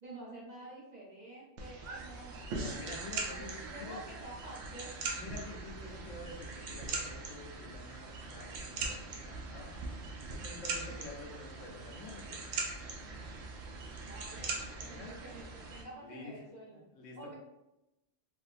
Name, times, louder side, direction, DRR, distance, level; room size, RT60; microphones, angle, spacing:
voice 1, 0.0-2.4 3.1-4.9 10.9-11.0 14.0-16.8 17.2-17.3, right 2 dB, 45° right, -5 dB, 0.7 m, -49 dB
sound 1, 1.6-15.8, right 3 dB, 90° right, 1.0 m, -41 dB
voice 2, 2.5-4.0 5.1-9.7 10.4-12.4 14.7-15.2 16.0-16.3 16.9-17.3, left 3 dB, 85° left, 1 dB, 1.0 m, -48 dB
3.4 x 2.5 x 2.5 m, 0.91 s
omnidirectional pair, 1.3 m